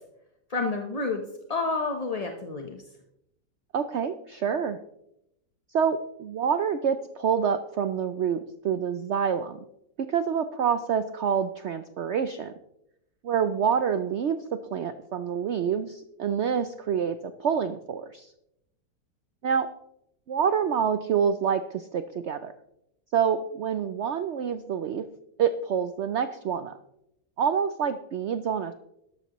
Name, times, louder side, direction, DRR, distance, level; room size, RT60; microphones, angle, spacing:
voice 1, 0.5-1.2 1.5-2.8, left 3 dB, 30° left, 3 dB, 0.8 m, -29 dB
voice 2, 3.7-4.8 5.7-9.6 10.0-12.5 13.2-18.3 19.4-19.7 20.3-22.5 23.1-25.0 25.4-26.8 27.4-28.7, right 7 dB, 75° right, 11 dB, 0.6 m, -27 dB
13.0 x 12.5 x 3.0 m, 0.81 s
omnidirectional pair, 1.8 m